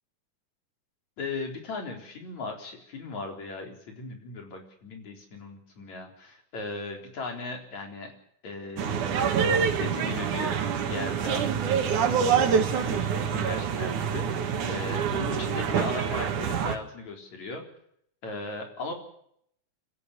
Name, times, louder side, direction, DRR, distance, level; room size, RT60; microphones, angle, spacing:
voice 1, 1.2-8.1 8.4-17.6 18.2-18.9, left 3 dB, 65° left, 3 dB, 5.3 m, -38 dB
sound 1, 8.8-16.8, right 7 dB, 85° right, 3.2 m, -26 dB
26.0 x 17.0 x 6.8 m, 0.70 s
omnidirectional pair, 3.4 m